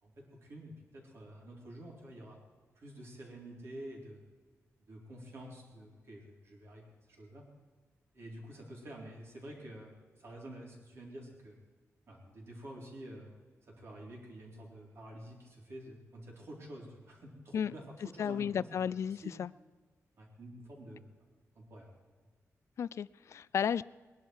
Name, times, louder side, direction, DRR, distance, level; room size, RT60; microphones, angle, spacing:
voice 1, 0.0-2.4 2.8-4.2 4.9-7.4 8.1-11.5 12.1-13.3 13.7-18.7 19.1-19.3 20.2-21.0 21.6-21.9, right 1 dB, 50° right, -2 dB, 4.0 m, -49 dB
voice 2, 18.2-19.5 22.8-23.8, left 8 dB, 60° left, 20 dB, 0.3 m, -33 dB
20.5 x 11.0 x 4.7 m, 1.4 s
wide cardioid pair, 175°, 6 cm